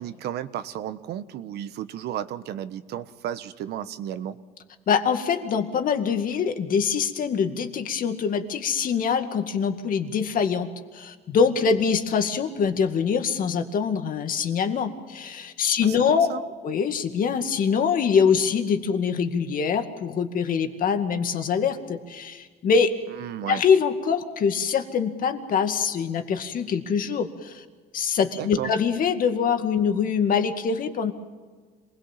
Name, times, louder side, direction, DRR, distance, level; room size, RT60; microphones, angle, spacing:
voice 1, 0.0-4.4 15.8-16.4 23.2-23.6 28.3-28.7, right 11 dB, 75° right, 12 dB, 1.3 m, -33 dB
voice 2, 4.9-16.3 16.6-22.9 23.4-27.6 27.9-31.1, left 6 dB, 55° left, 7 dB, 2.2 m, -24 dB
26.5 x 21.0 x 7.5 m, 1.4 s
cardioid pair, 110°, 17 cm